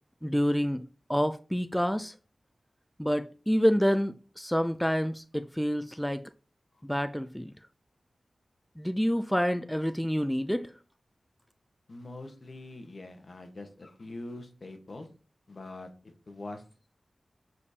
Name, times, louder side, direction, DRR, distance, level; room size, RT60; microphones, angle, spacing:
voice 1, 0.2-2.1 3.0-6.2 6.8-7.5 8.8-10.7, equal, 5° left, 0.3 m, -28 dB
voice 2, 11.9-15.1 15.5-15.9 16.3-16.6, left 2 dB, 55° left, 1.2 m, -43 dB
6.9 x 5.0 x 2.8 m
wide cardioid pair, 80°, 0 cm